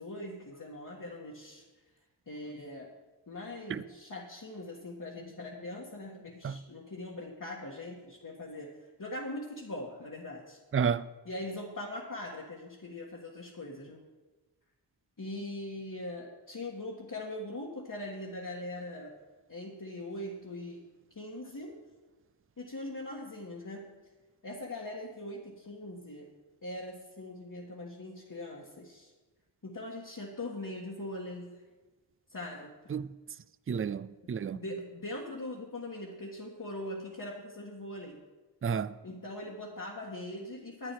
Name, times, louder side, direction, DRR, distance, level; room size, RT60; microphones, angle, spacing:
voice 1, 0.0-1.6 2.3-2.9 3.3-10.6 11.2-14.0 15.2-19.2 19.5-20.8 21.1-21.7 22.6-23.9 24.4-26.3 26.6-29.1 29.6-31.5 32.3-32.8 34.2-38.2 39.0-40.9, left 1 dB, 50° left, 1.6 m, -41 dB
voice 2, 10.7-11.1 32.9-33.1 33.7-34.6 38.6-39.0, right 7 dB, 35° right, 0.4 m, -31 dB
11.5 x 8.9 x 4.6 m
cardioid pair, 50°, 42 cm